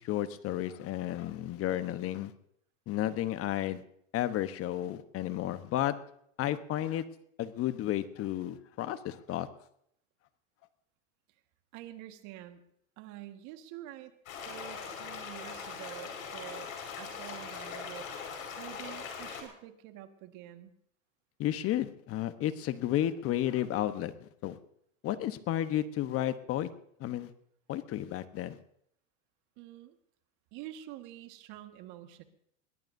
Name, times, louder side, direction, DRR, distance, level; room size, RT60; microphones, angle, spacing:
voice 1, 0.0-2.3 2.9-3.8 4.1-5.9 6.4-7.0 7.4-9.5 21.4-24.6 25.0-26.7 27.0-27.3 27.7-28.6, left 12 dB, 35° left, 12 dB, 1.1 m, -32 dB
voice 2, 11.7-12.6 13.0-14.1 14.5-16.7 17.0-20.7 29.6-30.0 30.5-32.2, right 13 dB, 50° right, 8 dB, 1.7 m, -47 dB
sound 1, 14.3-19.4, left 6 dB, 80° left, 5.3 m, -41 dB
22.0 x 18.0 x 2.7 m, 0.71 s
hypercardioid pair, 120°, 39 cm